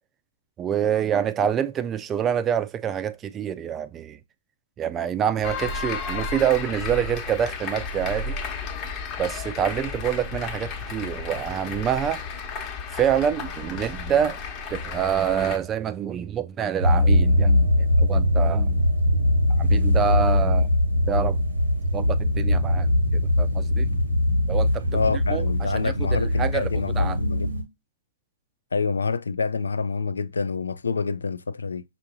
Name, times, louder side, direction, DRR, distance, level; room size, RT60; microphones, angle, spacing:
voice 1, 0.6-4.2 4.8-8.3 9.2-12.2 12.9-14.4 14.7-18.8 19.5-20.7 21.1-21.4 21.9-24.0 24.5-25.0 25.3-25.4 25.7-27.2, right 9 dB, 20° right, 0.3 m, -26 dB
sound 1, 5.4-15.6, left 4 dB, 35° left, 0.9 m, -33 dB
sound 2, 16.8-27.6, left 1 dB, 85° right, 0.9 m, -21 dB
voice 2, 24.9-27.5 28.7-31.8, left 4 dB, 85° left, 0.3 m, -27 dB
5.5 x 2.6 x 2.6 m
hypercardioid pair, 120°, 0 cm